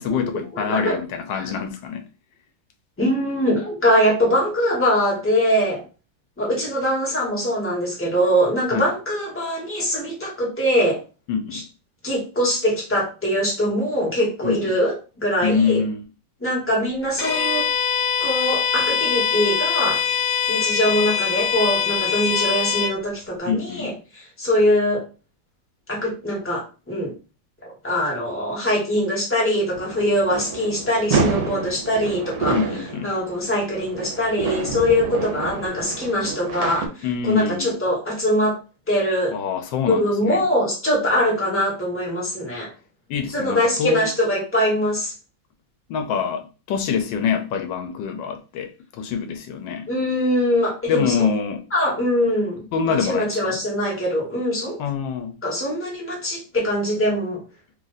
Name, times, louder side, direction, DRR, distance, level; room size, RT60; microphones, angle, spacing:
voice 1, 0.0-2.0 8.7-8.9 11.3-11.6 14.4-14.6 15.4-16.0 23.4-23.9 32.5-33.1 37.0-37.8 39.3-40.4 43.1-44.1 45.9-49.9 50.9-51.6 52.7-53.6 54.8-55.3, left 6 dB, 80° left, 1.3 m, -25 dB
voice 2, 0.5-1.0 1.4-1.5 3.0-5.8 6.4-11.0 11.5-11.6 12.0-15.8 16.4-17.6 18.2-20.0 20.5-25.0 25.9-27.1 27.8-32.6 33.0-36.9 37.2-38.6 38.9-39.3 39.9-42.7 43.3-45.1 49.9-51.3 51.7-54.8 55.4-57.4, equal, 10° left, 1.3 m, -22 dB
Bowed string instrument, 17.2-23.0, left 7 dB, 45° left, 1.7 m, -23 dB
sound 1, 29.7-36.9, right 4 dB, 60° right, 1.3 m, -28 dB
3.2 x 2.5 x 4.0 m
omnidirectional pair, 2.0 m